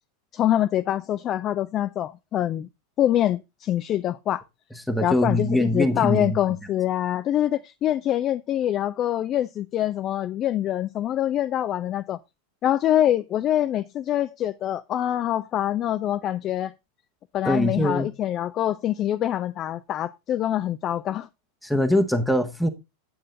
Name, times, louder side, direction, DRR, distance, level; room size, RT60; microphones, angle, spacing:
voice 1, 0.3-2.7 3.0-4.4 5.0-12.2 12.6-16.7 17.3-21.3, left 12 dB, 30° left, 0.4 m, -25 dB
voice 2, 4.7-6.4 17.4-18.1 21.6-22.7, left 1 dB, ahead, 0.9 m, -22 dB
9.5 x 7.6 x 3.8 m
figure-of-eight pair, 90°, 0 cm